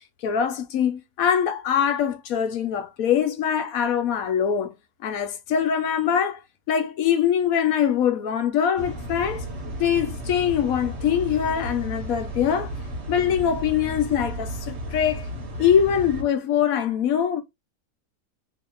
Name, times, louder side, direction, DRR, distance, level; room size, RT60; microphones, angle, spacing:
voice 1, 0.2-4.7 5.0-6.4 6.7-9.4 9.8-12.7 13.1-15.3 15.6-17.4, left 8 dB, 75° left, 1.1 m, -23 dB
sound 1, 8.8-16.2, equal, 55° right, 1.3 m, -34 dB
2.8 x 2.8 x 3.7 m
omnidirectional pair, 1.5 m